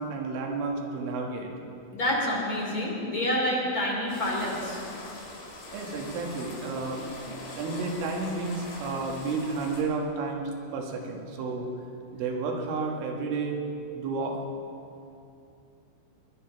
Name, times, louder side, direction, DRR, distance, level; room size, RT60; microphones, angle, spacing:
voice 1, 0.0-1.5 5.7-7.0 7.6-11.7 12.1-13.6 13.9-14.5, right 3 dB, 85° right, 1 dB, 4.2 m, -31 dB
voice 2, 1.9-4.8, left 1 dB, 25° left, -3 dB, 2.4 m, -28 dB
sound 1, 4.1-9.8, left 2 dB, 70° left, 5.2 m, -42 dB
20.5 x 11.0 x 5.9 m, 2.6 s
omnidirectional pair, 5.5 m